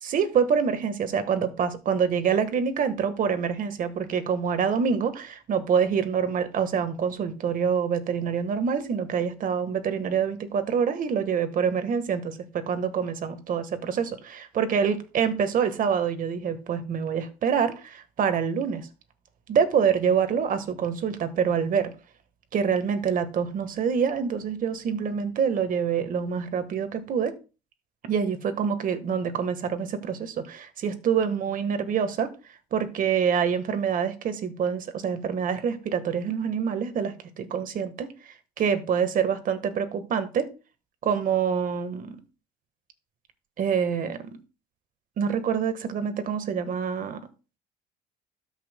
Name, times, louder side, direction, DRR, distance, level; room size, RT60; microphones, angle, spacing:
voice 1, 0.0-18.9 19.5-21.9 22.5-27.3 28.1-32.3 32.7-40.5 41.0-42.2 43.6-44.2 45.2-47.2, right 7 dB, 50° right, 1.4 m, -26 dB
13.0 x 5.6 x 2.2 m
supercardioid pair, 95°, 18 cm